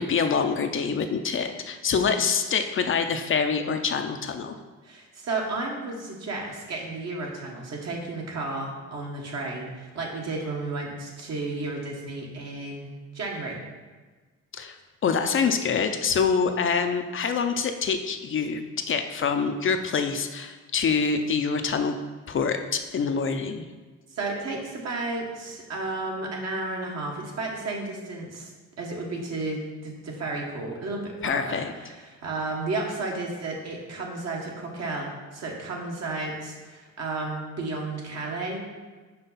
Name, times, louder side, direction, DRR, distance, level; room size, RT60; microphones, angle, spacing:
voice 1, 0.0-4.5 14.5-14.8 15.0-18.6 18.9-22.0 22.3-23.7 31.2-31.7, left 5 dB, 45° left, 6 dB, 0.5 m, -25 dB
voice 2, 4.8-13.6 24.1-28.5 28.8-38.7, right 2 dB, 60° right, -1 dB, 1.5 m, -33 dB
5.4 x 5.0 x 4.1 m, 1.3 s
cardioid pair, 90°, 30 cm